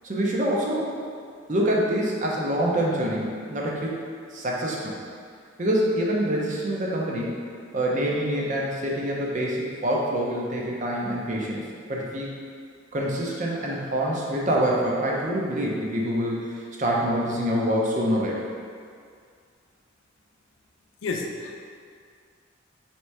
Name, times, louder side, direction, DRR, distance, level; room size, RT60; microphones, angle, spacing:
voice 1, 0.0-0.9 1.5-3.9 4.3-4.9 5.6-7.4 7.7-11.6 11.9-12.3 12.9-16.3 16.8-18.4, equal, 40° right, -3 dB, 0.6 m, -25 dB
voice 2, 21.0-21.6, left 3 dB, 90° left, 2 dB, 0.5 m, -30 dB
3.2 x 2.9 x 4.6 m, 2.2 s
head